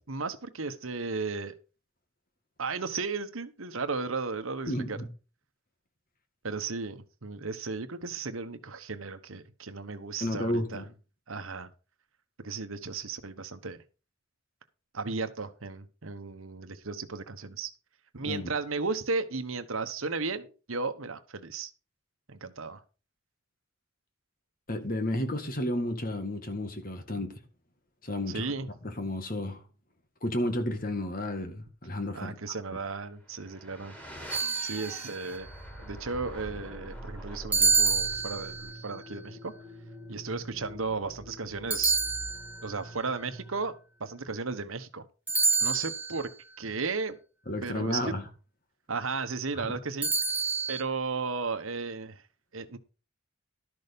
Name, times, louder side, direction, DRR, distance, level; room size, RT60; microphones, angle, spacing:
voice 1, 0.0-1.5 2.6-5.0 6.4-10.8 11.3-11.7 12.4-13.8 14.9-17.7 18.1-21.7 22.3-22.8 28.3-28.7 32.1-34.0 34.6-35.5 35.8-39.5 40.1-42.0 42.6-43.7 44.0-45.0 45.6-46.3 46.6-47.2 47.6-48.1 48.9-50.1 50.7-52.2 52.5-52.8, right 4 dB, 75° right, 1.2 m, -35 dB
voice 2, 4.7-5.1 10.2-10.8 18.2-18.5 24.7-27.4 28.0-28.5 28.8-29.6 30.2-32.8 47.5-48.2 49.6-49.8, left 1 dB, 40° left, 1.8 m, -32 dB
sound 1, 33.1-43.9, right 1 dB, 10° left, 2.5 m, -45 dB
sound 2, 34.3-35.2 37.5-38.8 41.7-42.8 45.3-46.2 50.0-50.8, right 4 dB, 10° right, 1.2 m, -27 dB
12.5 x 6.3 x 5.3 m
head